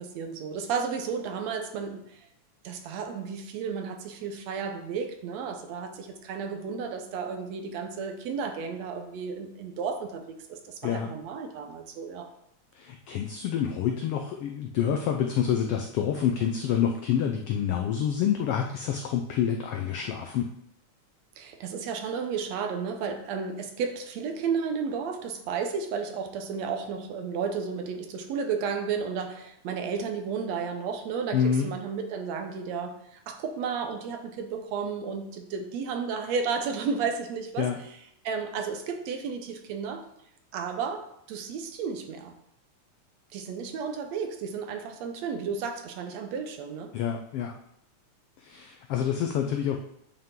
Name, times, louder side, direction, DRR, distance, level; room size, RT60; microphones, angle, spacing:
voice 1, 0.0-2.3 2.6-12.3 21.4-38.0 38.2-40.0 40.5-42.3 43.3-46.9, right 5 dB, 75° right, 5 dB, 1.9 m, -33 dB
voice 2, 12.7-20.5 31.3-31.7 37.6-37.8 46.9-47.5 48.4-49.8, left 8 dB, 90° left, 3 dB, 1.3 m, -27 dB
8.9 x 5.6 x 3.7 m, 0.74 s
omnidirectional pair, 3.3 m